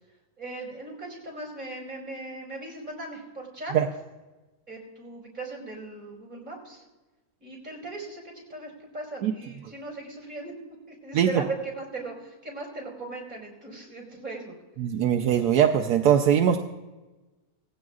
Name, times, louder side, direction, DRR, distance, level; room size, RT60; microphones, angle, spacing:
voice 1, 0.4-3.7 4.7-6.8 7.4-10.5 10.9-14.5, right 2 dB, 30° right, -1 dB, 4.4 m, -38 dB
voice 2, 14.8-16.6, right 9 dB, 80° right, 4 dB, 1.2 m, -21 dB
18.5 x 15.5 x 2.4 m, 1.1 s
omnidirectional pair, 1.6 m